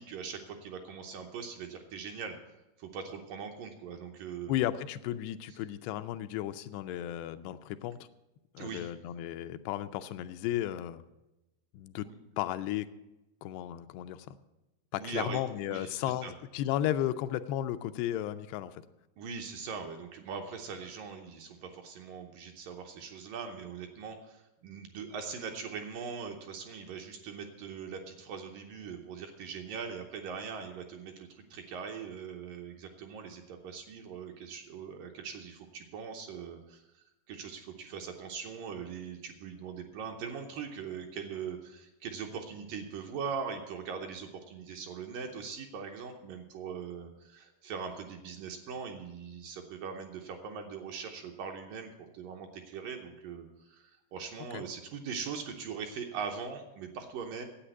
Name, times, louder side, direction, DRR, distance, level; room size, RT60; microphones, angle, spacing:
voice 1, 0.0-2.4 2.8-4.5 8.6-8.9 12.0-12.1 15.0-15.4 15.7-15.9 16.2-16.3 19.2-57.5, right 6 dB, 75° right, 3 dB, 2.2 m, -41 dB
voice 2, 4.5-8.0 8.5-11.0 11.7-12.1 12.4-12.9 13.4-14.4 14.9-18.8 54.5-54.6, left 12 dB, 85° left, 11 dB, 2.7 m, -34 dB
10.0 x 8.4 x 8.0 m, 0.97 s
omnidirectional pair, 4.7 m